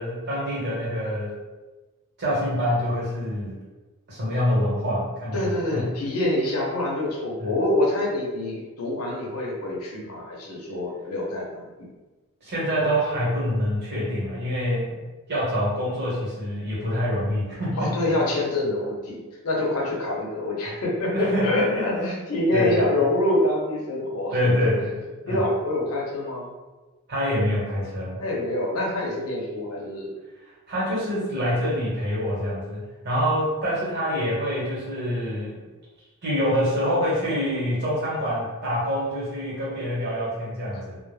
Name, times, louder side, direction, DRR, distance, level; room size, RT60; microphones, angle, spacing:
voice 1, 0.0-1.3 2.2-3.6 4.1-5.9 7.4-7.6 12.4-15.0 15.3-18.1 21.1-22.1 22.5-22.9 24.3-24.9 25.2-25.4 27.1-28.2 30.7-35.6 36.2-41.0, equal, 50° right, -7 dB, 1.1 m, -26 dB
voice 2, 5.3-11.9 17.8-24.4 25.3-26.5 28.2-30.1, left 1 dB, 80° left, -3 dB, 0.7 m, -26 dB
2.2 x 2.1 x 3.2 m, 1.2 s
head